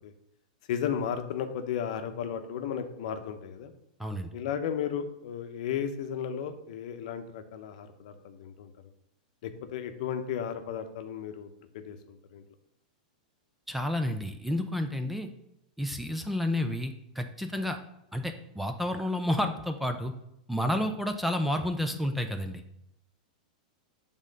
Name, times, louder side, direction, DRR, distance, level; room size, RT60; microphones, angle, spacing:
voice 1, 0.7-3.7 4.3-8.7 9.4-11.5 11.7-12.4, left 8 dB, 60° left, 8 dB, 0.7 m, -34 dB
voice 2, 13.7-15.3 15.8-17.8 18.1-20.1 20.5-22.6, left 1 dB, 5° right, 6 dB, 0.4 m, -30 dB
6.3 x 3.6 x 5.2 m, 0.79 s
supercardioid pair, 150°, 4 cm